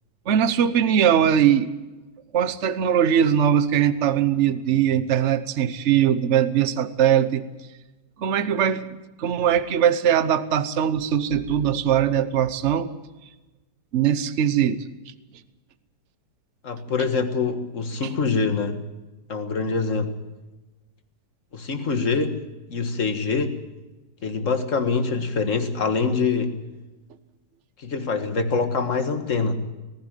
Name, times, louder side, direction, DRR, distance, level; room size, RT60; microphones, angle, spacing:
voice 1, 0.3-1.7 2.3-7.4 8.2-8.9 9.2-12.9 13.9-14.8 18.0-18.1, right 9 dB, 50° right, 12 dB, 1.1 m, -21 dB
voice 2, 16.6-18.8 19.3-20.1 21.5-22.4 22.7-23.6 24.2-26.6 27.8-29.5, left 4 dB, 50° left, 8 dB, 1.9 m, -24 dB
19.0 x 15.0 x 9.1 m, 1.1 s
omnidirectional pair, 1.8 m